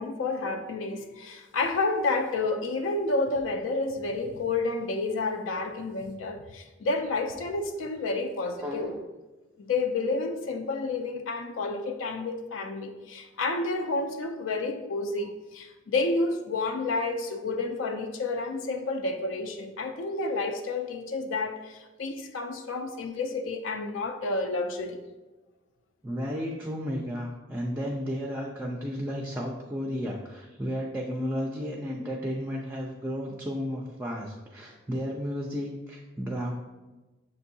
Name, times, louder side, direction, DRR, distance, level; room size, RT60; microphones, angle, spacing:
voice 1, 0.0-8.9 9.6-25.0, left 3 dB, 85° left, 0.4 m, -30 dB
voice 2, 8.6-9.0 26.0-36.5, equal, 10° right, 0.3 m, -33 dB
6.5 x 2.6 x 2.6 m
head